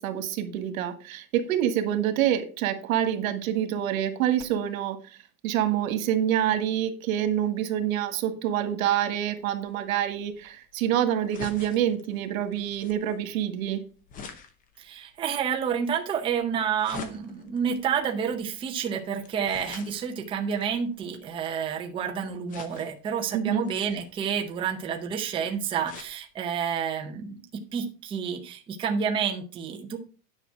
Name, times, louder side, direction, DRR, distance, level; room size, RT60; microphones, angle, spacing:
voice 1, 0.0-5.2 5.4-13.8 23.3-23.6, right 10 dB, 85° right, 1.7 m, -27 dB
sound 1, 9.2-21.8 22.5-23.1 23.6-26.2 26.6-26.7 27.0-27.1, left 5 dB, 20° left, 0.8 m, -46 dB
voice 2, 14.8-30.0, right 7 dB, 15° right, 0.7 m, -29 dB
9.9 x 5.9 x 4.6 m
supercardioid pair, 175°, 40 cm